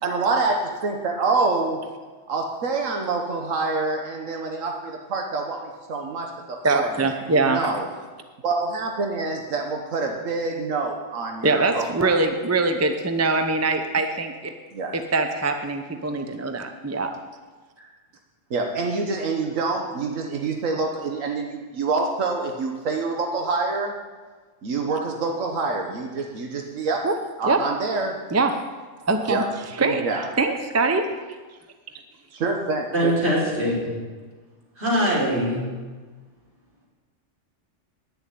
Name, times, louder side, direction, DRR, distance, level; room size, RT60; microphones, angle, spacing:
voice 1, 0.0-1.8 2.3-7.9 8.4-12.2 14.7-15.0 18.5-24.0 24.6-27.1 27.4-28.2 29.3-29.5 29.8-30.3 32.3-33.1, right 3 dB, 90° right, 2 dB, 1.5 m, -26 dB
voice 2, 6.6-7.6 11.4-14.5 14.9-17.2 27.0-27.1 27.5-27.6 28.3-28.5 29.1-29.4 29.8-30.1 30.4-31.1, right 3 dB, 15° right, 6 dB, 0.6 m, -23 dB
voice 3, 32.9-34.0 34.8-35.7, equal, 55° right, -5 dB, 4.4 m, -22 dB
9.9 x 7.0 x 9.2 m, 1.4 s
omnidirectional pair, 1.3 m